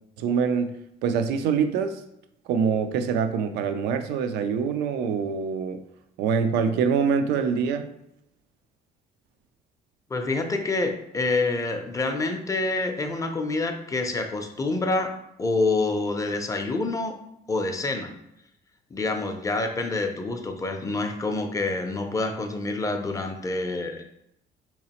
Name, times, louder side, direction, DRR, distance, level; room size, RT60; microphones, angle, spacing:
voice 1, 0.2-0.7 1.0-2.0 2.5-5.8 6.2-7.9, right 6 dB, 85° right, 9 dB, 0.4 m, -24 dB
voice 2, 10.1-15.1 15.4-17.2 17.5-18.1 18.9-24.1, left 3 dB, 20° left, 5 dB, 0.5 m, -27 dB
3.9 x 2.9 x 2.9 m, 0.79 s
cardioid pair, 110°, 17 cm